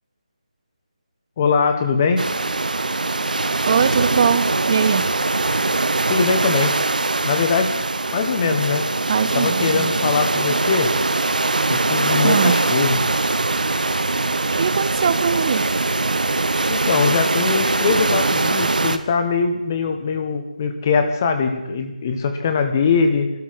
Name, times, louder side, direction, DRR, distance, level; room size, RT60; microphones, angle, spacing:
voice 1, 1.4-2.3 6.1-6.8 7.2-7.8 8.1-8.9 9.3-10.9 11.7-13.0 16.7-23.3, left 5 dB, 25° left, 7 dB, 1.1 m, -21 dB
sound 1, 2.2-19.0, right 3 dB, 85° right, 1.1 m, -21 dB
voice 2, 3.7-5.1 9.1-9.9 12.2-12.6 14.5-15.7, right 7 dB, 25° right, 13 dB, 0.4 m, -21 dB
21.0 x 13.5 x 4.7 m, 1.0 s
figure-of-eight pair, 170°, 4 cm